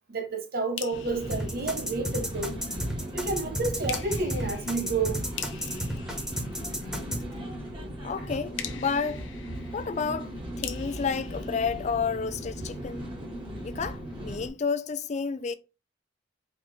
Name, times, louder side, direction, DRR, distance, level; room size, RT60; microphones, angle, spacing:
voice 1, 0.1-2.6 3.1-5.2, right 3 dB, 55° right, 0.8 m, -30 dB
sound 1, 0.8-2.5 3.9-7.2 8.6-12.5, left 10 dB, 85° left, 0.6 m, -43 dB
sound 2, 0.9-14.5, equal, 25° right, 1.1 m, -38 dB
sound 3, 1.3-7.2, right 1 dB, 5° right, 1.1 m, -32 dB
voice 2, 8.0-9.3 9.7-10.3 10.6-13.1 13.6-15.5, left 5 dB, 40° left, 0.4 m, -30 dB
4.1 x 3.0 x 3.2 m
head